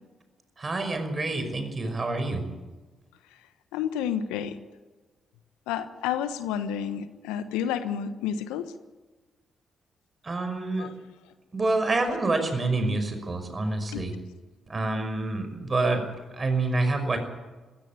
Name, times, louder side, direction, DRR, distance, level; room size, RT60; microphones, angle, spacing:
voice 1, 0.6-2.5 10.2-10.9 11.5-14.2 14.7-16.1 16.3-17.2, right 2 dB, 35° right, 8 dB, 5.7 m, -27 dB
voice 2, 3.7-4.6 5.7-8.6 10.8-10.9 13.9-14.0, left 9 dB, 80° left, 11 dB, 1.2 m, -30 dB
20.0 x 17.0 x 8.6 m, 1.2 s
hypercardioid pair, 45°, 0 cm